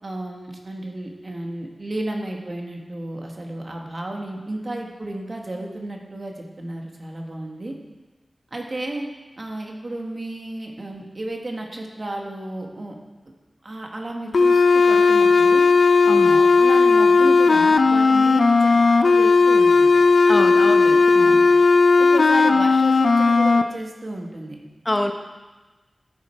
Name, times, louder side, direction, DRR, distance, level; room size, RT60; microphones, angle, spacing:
voice 1, 0.0-7.7 8.5-9.1 9.4-13.0 13.6-15.6 16.2-20.0 21.2-21.5 22.0-24.6, right 1 dB, 45° right, 1 dB, 1.6 m, -33 dB
sound 1, 14.3-23.6, left 4 dB, 75° left, 0.5 m, -15 dB
voice 2, 16.1-16.4 20.3-21.4 24.9-25.1, left 1 dB, 25° left, 4 dB, 0.8 m, -26 dB
13.5 x 7.0 x 4.5 m, 1.2 s
wide cardioid pair, 95°, 0 cm